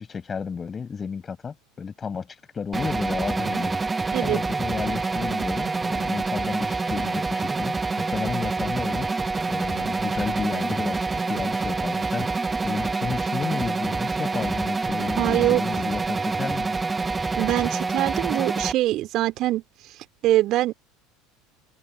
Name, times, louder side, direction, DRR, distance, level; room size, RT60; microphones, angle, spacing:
voice 1, 0.0-2.3 2.5-3.8 4.2-16.8, left 6 dB, 25° left, 5.5 m, -32 dB
sound 1, 2.7-18.7, right 3 dB, 15° right, 1.0 m, -26 dB
voice 2, 15.2-15.6 17.4-19.6 20.2-20.7, right 15 dB, 50° right, 2.6 m, -23 dB
figure-of-eight pair, 70°, 0 cm